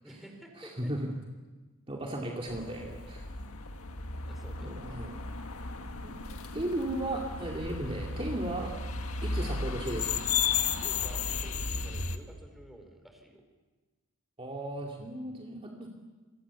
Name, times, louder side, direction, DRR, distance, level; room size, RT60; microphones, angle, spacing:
voice 1, 0.0-0.9 4.2-4.7 10.8-13.4, right 1 dB, ahead, 4 dB, 4.4 m, -51 dB
voice 2, 0.6-1.1 1.9-3.3 4.6-5.2 6.0-6.2 6.4-8.7 9.2-10.2 14.4-15.9, right 1 dB, 25° right, -1 dB, 2.5 m, -35 dB
sound 1, 2.5-12.2, left 5 dB, 80° left, 1.8 m, -34 dB
28.0 x 24.0 x 7.1 m, 1.3 s
head